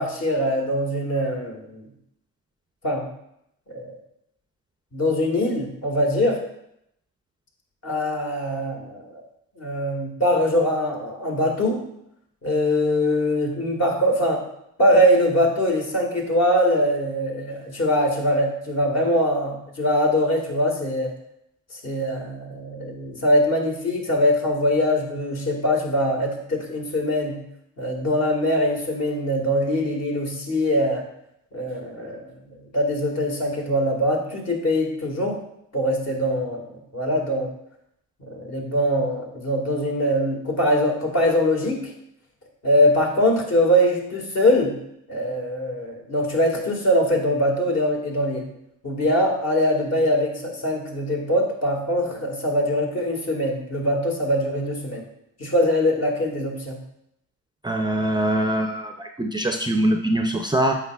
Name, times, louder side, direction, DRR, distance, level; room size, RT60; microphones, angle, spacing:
voice 1, 0.0-1.8 2.8-3.1 3.7-3.9 4.9-6.4 7.8-9.2 9.6-11.8 12.4-14.4 14.8-21.1 21.7-27.4 27.8-31.0 31.5-32.3 32.7-35.4 35.7-36.6 36.9-37.5 38.2-41.9 42.6-44.7 45.1-48.5 48.8-55.0 55.4-56.8, equal, 50° left, 0 dB, 2.0 m, -22 dB
voice 2, 57.6-60.8, right 1 dB, 15° right, 4 dB, 0.5 m, -23 dB
8.2 x 5.2 x 2.4 m, 0.77 s
supercardioid pair, 65°, 34 cm